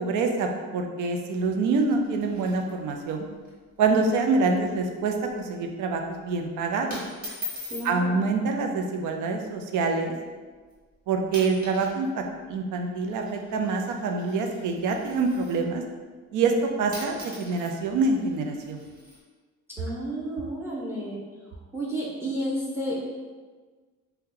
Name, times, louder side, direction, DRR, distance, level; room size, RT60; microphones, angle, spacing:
voice 1, 0.0-3.3 3.8-7.0 7.8-10.1 11.1-12.2 12.5-15.8 16.3-16.5 16.8-18.8, right 4 dB, 85° right, 3 dB, 0.5 m, -26 dB
sound 1, 1.9-3.2 3.4-3.5 3.8-4.1 4.5-4.8 5.1-5.4 6.2-6.4 6.9-7.9 8.9-9.2 9.9-10.0 10.7-10.9 11.2-12.0 12.2-15.7 16.6-16.7 16.9-19.2, left 1 dB, 30° right, 1.2 m, -42 dB
voice 2, 7.7-8.3 19.8-21.2 21.7-23.0, right 1 dB, 10° right, -4 dB, 0.6 m, -31 dB
2.7 x 2.2 x 3.7 m, 1.4 s
cardioid pair, 90°, 30 cm